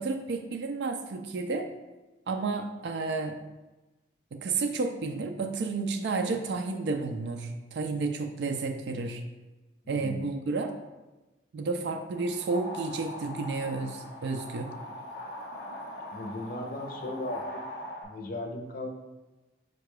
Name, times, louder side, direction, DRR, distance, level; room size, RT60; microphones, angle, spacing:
voice 1, 0.0-1.7 2.3-3.4 4.3-9.2 9.9-10.7 11.5-14.7, right 3 dB, 70° right, 5 dB, 0.4 m, -31 dB
voice 2, 9.8-10.3 16.1-17.6 18.0-18.9, left 1 dB, 50° left, 3 dB, 0.5 m, -37 dB
sound 1, 12.1-18.0, left 1 dB, 90° left, 0.8 m, -41 dB
4.7 x 2.2 x 4.7 m, 1.1 s
head